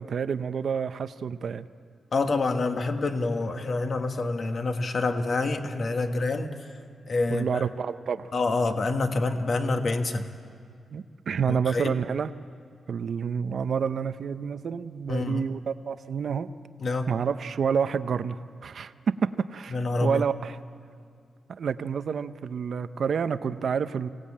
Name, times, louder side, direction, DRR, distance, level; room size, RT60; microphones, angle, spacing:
voice 1, 0.0-1.7 7.3-8.3 10.9-12.3 12.9-16.5 17.1-20.6 21.5-24.1, right 6 dB, 60° right, 12 dB, 0.7 m, -29 dB
voice 2, 2.1-6.5 7.1-7.6 8.3-10.3 11.5-11.9 15.1-15.4 16.8-17.1 19.7-20.2, left 3 dB, 45° left, 6 dB, 1.6 m, -27 dB
24.5 x 17.5 x 8.7 m, 2.2 s
wide cardioid pair, 135°, 0 cm